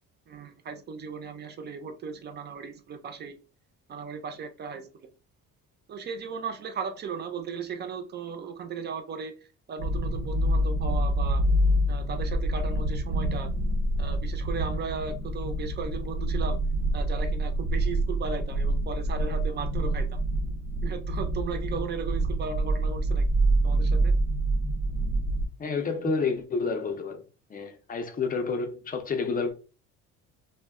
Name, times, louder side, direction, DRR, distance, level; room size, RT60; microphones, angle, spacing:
voice 1, 0.3-3.4 3.9-5.1 5.9-11.4 11.9-13.5 14.0-16.6 16.9-20.2 20.8-23.3 23.6-24.1, right 5 dB, 30° right, 0.5 m, -36 dB
sound 1, 9.8-25.4, right 1 dB, 80° right, 0.9 m, -26 dB
voice 2, 25.6-27.2 27.5-29.5, left 4 dB, 25° left, 0.5 m, -29 dB
2.1 x 2.1 x 3.5 m
cardioid pair, 125°, 32 cm